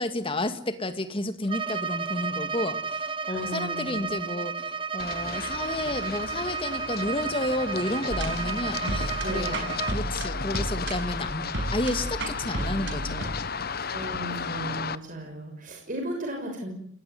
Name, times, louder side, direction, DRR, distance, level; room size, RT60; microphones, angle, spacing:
voice 1, 0.0-11.4 11.7-13.5, left 1 dB, 25° left, 9 dB, 2.3 m, -31 dB
Bowed string instrument, 1.4-10.0, right 5 dB, 25° right, 1.3 m, -32 dB
voice 2, 3.3-4.2 9.2-9.7 13.9-16.7, right 1 dB, 40° right, 2 dB, 6.6 m, -35 dB
Run, 5.0-15.0, left 5 dB, 50° left, 1.1 m, -34 dB
sound 1, 8.1-13.2, right 1 dB, 60° right, 6.2 m, -33 dB
30.0 x 19.5 x 9.6 m, 0.65 s
head